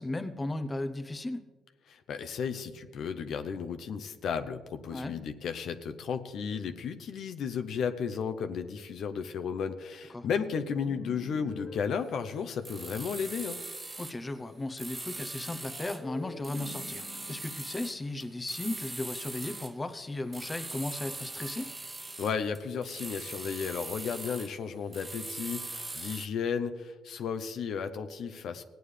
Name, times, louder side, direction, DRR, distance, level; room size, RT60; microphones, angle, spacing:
voice 1, 0.0-1.4 4.9-5.1 10.1-10.3 14.0-21.7, left 2 dB, 20° left, 10 dB, 0.7 m, -36 dB
voice 2, 1.9-13.6 22.2-28.6, left 6 dB, 70° left, 9 dB, 0.7 m, -34 dB
sound 1, 10.8-13.2 15.6-19.0, left 4 dB, 40° left, 1.3 m, -47 dB
sound 2, 12.6-14.2 14.8-16.1 16.4-19.8 20.3-24.6 24.9-26.3, right 2 dB, 20° right, 0.6 m, -41 dB
17.0 x 9.2 x 3.3 m, 1.3 s
cardioid pair, 90°, 0 cm